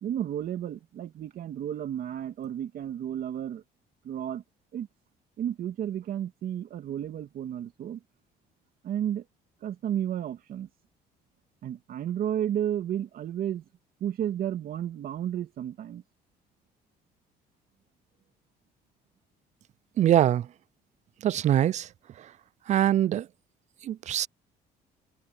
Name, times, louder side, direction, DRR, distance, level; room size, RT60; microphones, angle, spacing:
voice 1, 0.0-3.6 4.0-4.4 4.7-4.9 5.4-8.0 8.8-9.2 9.6-10.7 11.6-13.6 14.0-16.0, right 10 dB, 60° right, 2.8 m, -32 dB
voice 2, 20.0-20.5 21.2-21.9 22.7-23.3 23.8-24.3, right 11 dB, 45° right, 0.4 m, -23 dB
cardioid pair, 110°, 17 cm